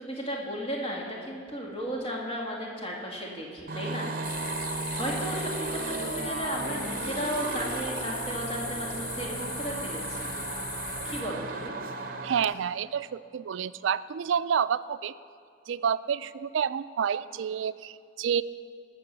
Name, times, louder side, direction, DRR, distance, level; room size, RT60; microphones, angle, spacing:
voice 1, 0.0-4.1 4.9-10.3 11.0-11.8, equal, 30° left, -2 dB, 2.0 m, -34 dB
sound 1, 3.7-12.5, right 3 dB, 45° right, 0.8 m, -35 dB
sound 2, 4.2-11.2, left 4 dB, 65° left, 2.0 m, -38 dB
voice 2, 12.2-15.1 15.7-18.4, right 7 dB, 80° right, 15 dB, 0.3 m, -29 dB
18.5 x 6.8 x 6.8 m, 2.2 s
head